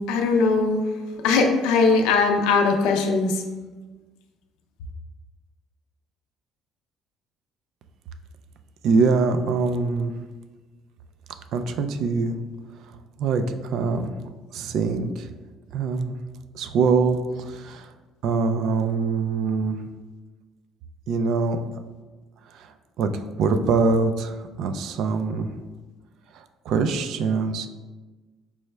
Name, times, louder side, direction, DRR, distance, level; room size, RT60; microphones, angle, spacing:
voice 1, 0.1-0.9 1.2-3.4, left 4 dB, 90° left, 4 dB, 0.4 m, -20 dB
voice 2, 8.8-10.1 11.5-12.4 13.2-14.1 14.5-15.3 15.7-16.1 16.5-17.9 18.2-19.8 21.1-21.6 22.5-22.7 23.0-23.1 23.4-25.5 26.3-27.7, right 4 dB, 70° right, 8 dB, 0.3 m, -23 dB
4.6 x 2.1 x 3.2 m, 1.3 s
cardioid pair, 95°, 0 cm